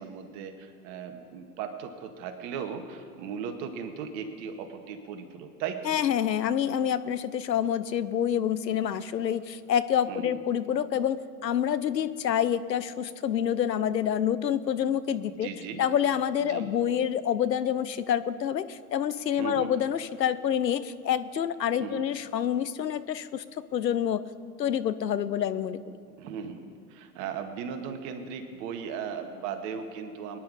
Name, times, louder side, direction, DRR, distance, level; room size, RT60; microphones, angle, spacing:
voice 1, 0.0-6.0 10.1-10.4 15.4-15.8 16.4-16.7 19.4-19.7 21.8-22.0 26.2-30.4, right 7 dB, 50° right, 5 dB, 1.9 m, -37 dB
voice 2, 5.8-15.5 15.8-23.4 23.7-24.2 24.6-25.8, left 9 dB, 90° left, 15 dB, 0.8 m, -27 dB
22.5 x 10.5 x 5.0 m, 2.2 s
hypercardioid pair, 100°, 49 cm